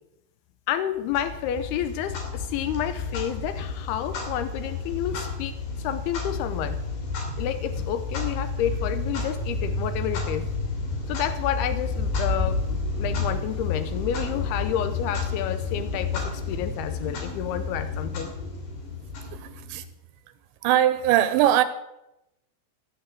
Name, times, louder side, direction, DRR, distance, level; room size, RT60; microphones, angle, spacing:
voice 1, 0.7-5.6 5.8-6.8 7.4-10.5 11.1-18.3, left 10 dB, 90° left, 2.2 m, -30 dB
Clock, 1.1-19.8, left 3 dB, 60° left, 4.6 m, -30 dB
voice 2, 19.3-19.8 20.6-21.6, right 12 dB, 80° right, 2.8 m, -21 dB
16.0 x 6.5 x 8.3 m
omnidirectional pair, 5.4 m